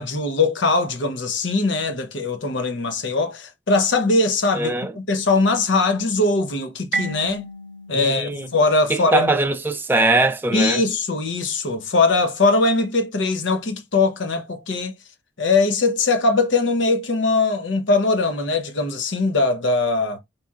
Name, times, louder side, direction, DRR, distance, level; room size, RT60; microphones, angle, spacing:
voice 1, 0.0-7.4 7.9-9.3 10.5-14.9 15.4-20.2, left 3 dB, 75° left, 0.7 m, -21 dB
voice 2, 4.6-4.9 7.9-8.5 8.9-10.8, right 3 dB, 10° right, 0.3 m, -21 dB
Marimba xylophone, 6.9-9.6, right 2 dB, 75° right, 0.7 m, -33 dB
4.1 x 3.0 x 2.3 m
head